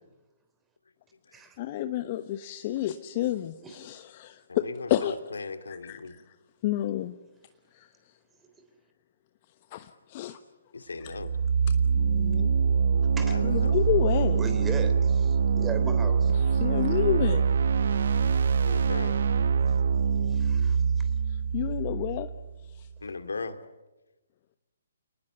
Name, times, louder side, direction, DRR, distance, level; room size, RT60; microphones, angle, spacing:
voice 1, 1.6-5.1 5.7-6.4 6.6-7.2 7.7-8.1 9.7-10.4 11.0-11.2 11.9-12.5 13.4-14.4 16.3-17.4 21.3-22.3 22.6-22.9, left 12 dB, 35° left, 1.2 m, -30 dB
voice 2, 4.5-6.1 10.7-11.3 13.2-13.8 18.6-19.2 23.0-23.6, left 4 dB, 75° left, 2.4 m, -37 dB
sound 1, 11.1-22.8, right 6 dB, 60° right, 1.2 m, -24 dB
voice 3, 14.4-16.3 20.3-21.1, right 4 dB, 10° right, 3.6 m, -37 dB
29.5 x 19.5 x 9.4 m
figure-of-eight pair, 135°, 0 cm